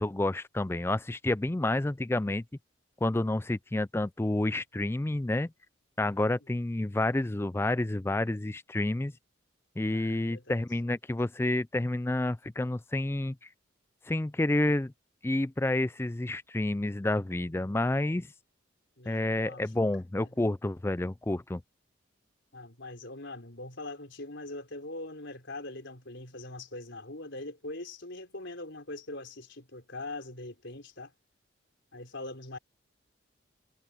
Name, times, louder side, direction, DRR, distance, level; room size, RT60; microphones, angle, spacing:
voice 1, 0.0-2.4 3.0-5.5 6.0-9.1 9.8-13.4 14.1-14.9 15.2-18.3 19.1-21.6, left 1 dB, 10° left, 0.3 m, -29 dB
voice 2, 9.9-10.6 19.0-19.9 22.5-31.1 31.9-32.6, left 2 dB, 65° left, 4.7 m, -42 dB
head